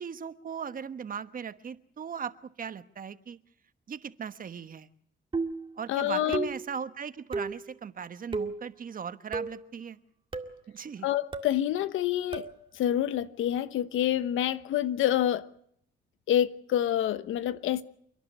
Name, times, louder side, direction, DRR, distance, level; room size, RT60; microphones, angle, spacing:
voice 1, 0.0-2.3 2.6-3.4 3.9-4.9 5.8-10.0 10.7-11.1, right 7 dB, 45° right, 1.2 m, -38 dB
sound 1, 5.3-5.7 6.3-6.7 7.3-7.6 8.3-8.6 9.3-9.7 10.3-10.6 11.3-11.6 12.3-12.6, right 4 dB, 25° right, 2.1 m, -33 dB
voice 2, 5.9-6.5 11.0-12.5 12.7-15.5 16.3-17.8, left 11 dB, 80° left, 1.1 m, -27 dB
29.0 x 10.5 x 9.8 m
cardioid pair, 90°, 20 cm